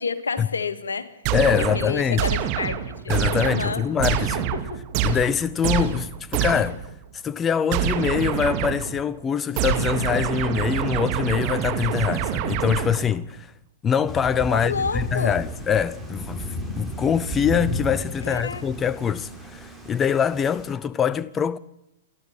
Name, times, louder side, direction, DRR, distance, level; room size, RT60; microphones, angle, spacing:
voice 1, 0.0-1.1 1.7-3.9 4.5-4.9 14.5-15.4 18.3-18.7, left 5 dB, 80° left, 2.0 m, -30 dB
sound 1, 1.2-6.9 7.7-9.0 9.6-13.2, right 10 dB, 40° right, 2.3 m, -26 dB
voice 2, 1.3-2.2 3.1-4.5 5.0-6.8 7.2-13.5 13.8-21.6, left 7 dB, 20° left, 0.7 m, -24 dB
Thunder / Rain, 14.1-20.7, equal, ahead, 4.7 m, -33 dB
29.5 x 12.0 x 9.0 m
hypercardioid pair, 110°, 0 cm